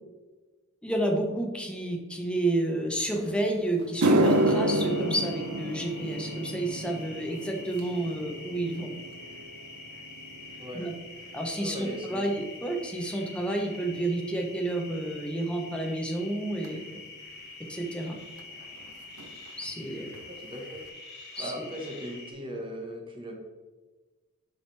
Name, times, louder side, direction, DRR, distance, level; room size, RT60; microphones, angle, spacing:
voice 1, 0.8-8.9 10.7-10.9 11.3-16.8 17.7-18.2 19.6-20.1 21.4-21.5, right 1 dB, 5° left, 1 dB, 0.9 m, -30 dB
sound 1, 3.3-3.4 3.8-12.3 12.6-13.0 13.8-13.9 16.6-16.7 18.4-18.5 18.7-18.9 19.2-19.7 20.1-20.2 20.8-20.9, right 1 dB, 85° right, 0.7 m, -30 dB
sound 2, 4.2-22.3, left 3 dB, 50° left, 1.6 m, -46 dB
voice 2, 11.6-12.3 20.2-20.8 21.4-23.4, equal, 25° right, 1 dB, 1.3 m, -38 dB
7.3 x 5.0 x 3.4 m, 1.3 s
head